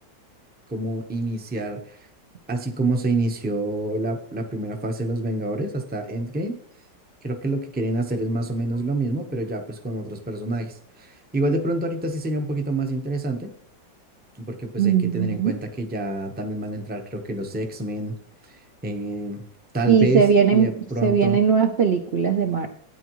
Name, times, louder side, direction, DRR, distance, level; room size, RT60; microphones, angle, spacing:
voice 1, 0.7-1.8 2.5-6.6 7.2-13.5 14.4-18.2 18.5-19.4 19.7-21.4, right 2 dB, 10° right, 4 dB, 0.4 m, -27 dB
voice 2, 14.8-15.5 19.9-20.7 21.0-22.7, right 7 dB, 80° right, 4 dB, 0.5 m, -19 dB
13.0 x 9.2 x 3.1 m, 0.63 s
omnidirectional pair, 2.0 m